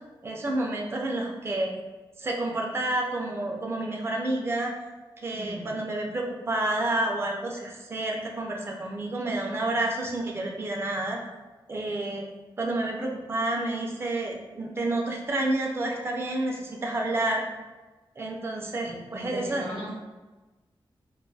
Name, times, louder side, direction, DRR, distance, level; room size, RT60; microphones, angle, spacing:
voice 1, 0.2-1.7 2.2-4.8 5.2-11.2 11.7-12.3 12.6-17.4 18.2-19.6, right 2 dB, 25° right, 0 dB, 0.3 m, -29 dB
voice 2, 5.3-5.7 18.8-19.9, equal, 60° right, -7 dB, 1.2 m, -39 dB
2.6 x 2.3 x 2.2 m, 1.2 s
wide cardioid pair, 175°, 9 cm